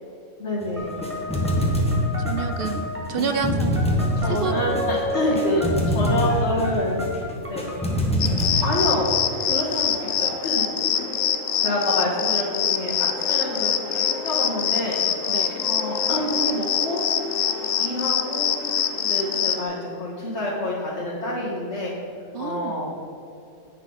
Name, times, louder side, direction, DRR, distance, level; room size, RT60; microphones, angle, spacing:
voice 1, 0.4-1.0 3.1-3.8 4.2-7.0 7.5-7.6 8.6-9.2 9.4-10.7 11.6-15.0 15.7-17.0 17.8-18.5 19.0-22.1 22.4-23.0, left 1 dB, 60° left, -9 dB, 2.1 m, -27 dB
sound 1, 0.6-8.7, equal, 5° left, 1.4 m, -25 dB
sound 2, 0.8-8.0, left 1 dB, 25° right, 1.8 m, -33 dB
voice 2, 2.3-3.9 4.2-4.9 5.2-5.4 15.3-15.6 22.3-22.8, right 6 dB, 60° right, 9 dB, 0.6 m, -29 dB
sound 3, 8.2-19.6, left 8 dB, 85° left, 1.1 m, -24 dB
10.5 x 9.1 x 4.0 m, 2.6 s
omnidirectional pair, 1.3 m